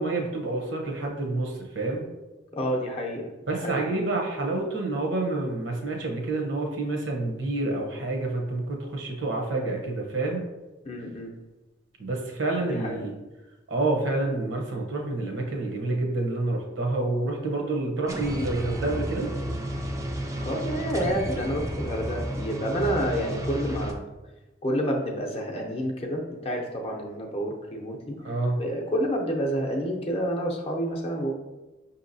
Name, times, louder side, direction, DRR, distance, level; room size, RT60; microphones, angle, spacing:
voice 1, 0.0-2.0 3.5-10.5 12.0-13.1 13.7-19.3 28.2-28.6, right 2 dB, 70° right, 1 dB, 0.8 m, -28 dB
voice 2, 2.5-3.3 3.6-3.8 10.9-11.3 12.7-13.1 20.4-24.0 24.6-28.2 28.6-31.4, equal, 30° left, 0 dB, 0.6 m, -29 dB
sound 1, 18.1-23.9, equal, 15° right, 0.3 m, -32 dB
5.4 x 2.8 x 2.6 m, 1.1 s
head